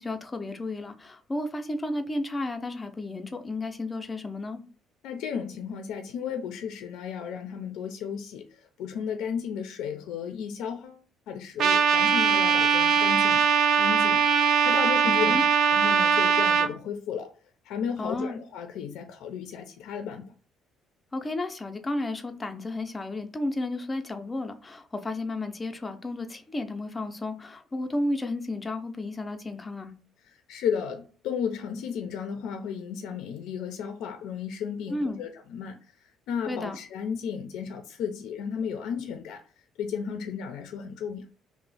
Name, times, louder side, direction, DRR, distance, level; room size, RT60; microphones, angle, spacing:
voice 1, 0.0-4.6 15.0-15.4 18.0-18.4 21.1-29.9 34.9-35.2 36.5-36.8, left 2 dB, 15° left, 0.4 m, -32 dB
voice 2, 5.0-11.0 11.3-13.4 13.8-14.3 14.6-15.4 15.7-17.3 17.6-20.3 30.3-39.4 39.8-41.3, left 7 dB, 85° left, 0.4 m, -34 dB
Trumpet, 11.6-16.7, right 6 dB, 55° right, 0.3 m, -21 dB
2.9 x 2.0 x 3.9 m
cardioid pair, 140°, 0 cm